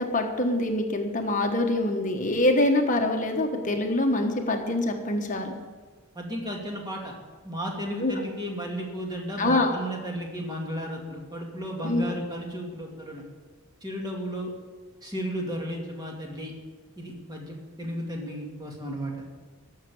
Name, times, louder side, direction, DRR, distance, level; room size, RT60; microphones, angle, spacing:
voice 1, 0.0-5.5 8.0-8.1 9.4-9.7 11.8-12.0, left 1 dB, 35° left, 3 dB, 1.2 m, -25 dB
voice 2, 6.1-7.1 7.4-13.2 13.8-14.5 15.0-16.5 17.0-19.2, equal, 20° right, -1 dB, 2.3 m, -34 dB
14.0 x 6.6 x 9.2 m, 1.4 s
head